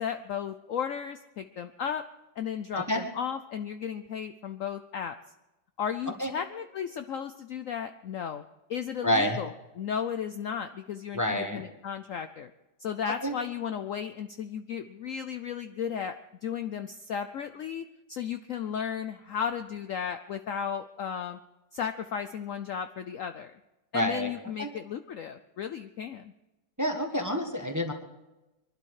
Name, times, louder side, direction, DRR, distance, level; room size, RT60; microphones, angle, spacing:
voice 1, 0.0-2.0 2.4-5.1 5.8-9.5 9.8-12.5 12.8-16.2 16.4-21.4 21.7-23.5 23.9-26.3, left 7 dB, 65° left, 9 dB, 0.9 m, -34 dB
voice 2, 9.0-9.4 11.1-11.6 13.2-13.3 23.9-24.3 24.6-24.7 26.8-27.9, equal, 10° right, 4 dB, 1.4 m, -28 dB
23.0 x 12.0 x 4.9 m, 1.0 s
omnidirectional pair, 1.8 m